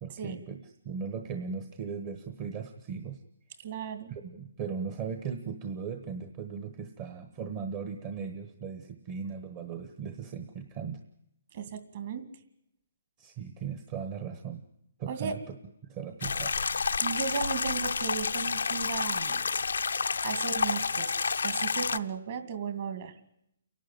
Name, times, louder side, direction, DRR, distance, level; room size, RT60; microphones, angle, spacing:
voice 1, 0.0-3.2 4.1-11.0 13.2-14.6 15.0-15.5 15.9-16.5, right 6 dB, 25° right, 6 dB, 1.2 m, -38 dB
voice 2, 3.6-4.1 11.5-12.2 15.1-15.4 17.0-19.4 20.2-21.1 21.4-23.1, right 6 dB, 40° right, 8 dB, 2.4 m, -35 dB
sound 1, 16.2-22.0, left 5 dB, 90° left, 0.8 m, -29 dB
29.5 x 12.0 x 9.3 m, 0.79 s
hypercardioid pair, 165°, 0 cm